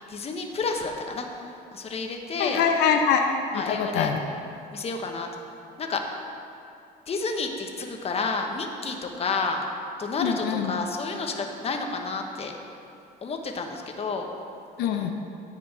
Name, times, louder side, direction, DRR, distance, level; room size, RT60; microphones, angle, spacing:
voice 1, 0.1-1.3 1.7-2.6 3.5-4.1 4.7-5.3 5.8-6.0 7.1-9.6 10.0-12.5 13.2-14.3, left 4 dB, 35° left, 3 dB, 1.2 m, -30 dB
voice 2, 2.4-3.3 3.5-4.2 10.2-10.7 14.8-15.1, left 7 dB, 80° left, 4 dB, 0.7 m, -24 dB
10.5 x 5.2 x 8.1 m, 2.8 s
cardioid pair, 110°, 17 cm